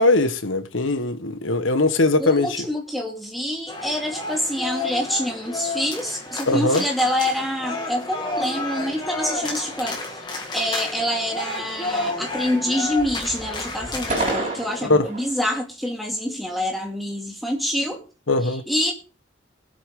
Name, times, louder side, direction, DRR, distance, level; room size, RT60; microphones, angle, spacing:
voice 1, 0.0-2.5 6.5-6.8 14.9-15.0 18.3-18.6, left 2 dB, 85° left, 1.2 m, -20 dB
voice 2, 2.2-10.0 10.5-18.0 18.4-18.9, left 1 dB, ahead, 2.4 m, -26 dB
sound 1, 3.7-14.4, left 2 dB, 25° left, 2.4 m, -31 dB
sound 2, 9.4-10.5 10.9-11.4 11.6-12.6 12.9-15.4, right 2 dB, 35° right, 5.9 m, -32 dB
21.0 x 8.2 x 3.7 m
head